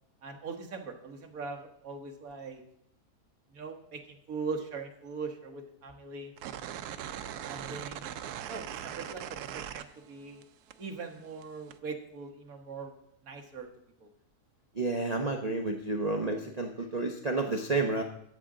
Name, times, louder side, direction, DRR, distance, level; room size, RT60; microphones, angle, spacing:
voice 1, 0.2-2.6 3.5-6.3 7.5-8.1 8.5-10.4 10.8-12.9 13.2-13.7 14.0-14.1, right 4 dB, 65° right, 4 dB, 1.7 m, -41 dB
sound 1, 6.4-10.4 10.7-11.8, right 10 dB, 85° right, 1.1 m, -40 dB
voice 2, 14.7-18.0, right 3 dB, 35° right, 3 dB, 0.7 m, -30 dB
13.5 x 7.3 x 3.8 m, 0.74 s
omnidirectional pair, 1.6 m